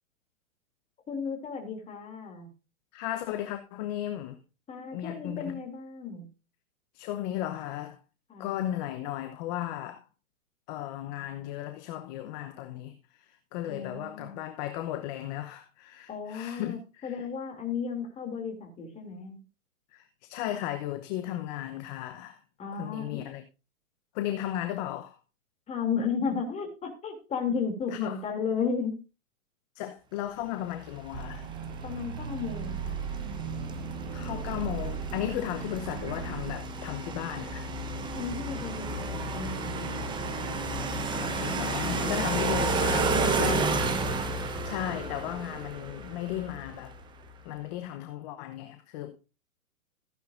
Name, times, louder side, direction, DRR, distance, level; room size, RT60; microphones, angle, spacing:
voice 1, 1.1-2.5 4.7-6.3 8.3-8.6 13.7-14.4 16.1-19.4 22.6-23.2 25.7-29.0 31.8-33.0 38.1-40.0 43.8-44.5, left 6 dB, 15° left, 2.8 m, -34 dB
voice 2, 2.9-4.4 4.9-5.6 6.9-8.0 8.4-10.0 10.7-17.3 19.9-22.4 22.7-23.4 24.1-25.2 27.9-28.2 29.7-31.5 34.1-37.7 41.1-44.1 44.6-47.0 47.4-49.2, left 12 dB, 30° left, 0.9 m, -35 dB
sound 1, 30.9-47.0, right 3 dB, 10° right, 1.0 m, -32 dB
sound 2, 31.1-36.5, right 7 dB, 55° right, 2.4 m, -37 dB
14.5 x 10.0 x 2.6 m
hypercardioid pair, 135°, 42 cm